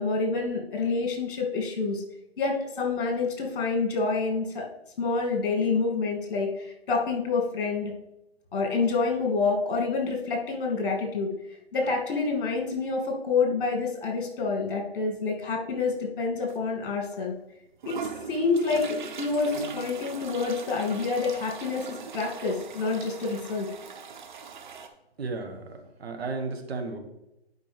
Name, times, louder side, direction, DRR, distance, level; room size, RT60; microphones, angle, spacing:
voice 1, 0.0-2.0 2.4-4.7 5.0-7.9 8.5-11.3 11.7-17.3 17.8-18.0 18.3-23.7, left 4 dB, 55° left, 0 dB, 2.5 m, -27 dB
sound 1, 16.5-16.6 17.1-17.2 17.8-24.9, right 6 dB, 45° right, 1.0 m, -41 dB
voice 2, 25.2-27.0, right 3 dB, 70° right, 5 dB, 1.6 m, -34 dB
11.0 x 5.0 x 3.4 m, 0.89 s
hypercardioid pair, 150°, 32 cm